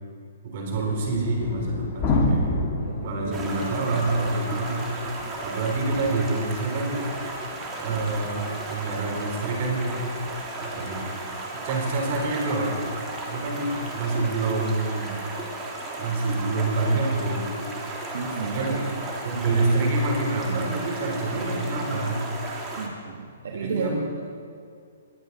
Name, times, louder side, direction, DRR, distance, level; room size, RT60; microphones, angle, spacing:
voice 1, 0.4-2.7 3.0-4.8 5.4-7.1 7.8-10.0 10.6-11.0 11.6-12.8 13.3-15.2 16.0-17.5 18.4-18.8 19.2-22.3 23.6-23.9, right 2 dB, 45° right, -1 dB, 3.7 m, -27 dB
sound 1, 0.7-13.8 14.8-14.9 15.5-15.6 15.9-16.0, left 2 dB, 25° left, 1.6 m, -32 dB
voice 2, 2.8-4.4 18.1-18.8 22.8-24.2, right 4 dB, 70° right, 0 dB, 1.4 m, -33 dB
Stream, 3.3-22.9, right 2 dB, 20° right, 1.7 m, -35 dB
20.5 x 7.9 x 4.1 m, 2.3 s
hypercardioid pair, 145°, 0 cm